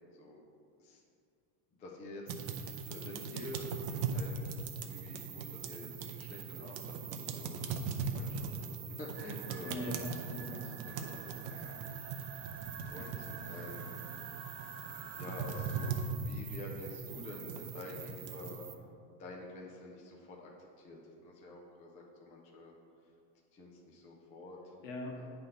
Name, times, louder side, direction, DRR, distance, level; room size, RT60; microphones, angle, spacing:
voice 1, 1.8-4.5 4.8-9.8 10.4-10.6 10.9-11.8 12.4-13.9 15.2-18.6 19.2-22.8 23.5-24.7 25.2-25.3, left 2 dB, 15° left, -1 dB, 0.3 m, -48 dB
sound 1, 2.3-18.7, right 5 dB, 40° right, 0.5 m, -40 dB
sound 2, 9.1-15.9, right 8 dB, 85° right, 0.6 m, -50 dB
voice 2, 9.6-12.1 13.0-13.5 24.8-25.3, left 1 dB, 70° left, 0 dB, 1.4 m, -44 dB
sound 3, 10.8-16.1, left 5 dB, 50° left, 1.3 m, -56 dB
9.0 x 3.4 x 5.6 m, 2.4 s
cardioid pair, 160°, 48 cm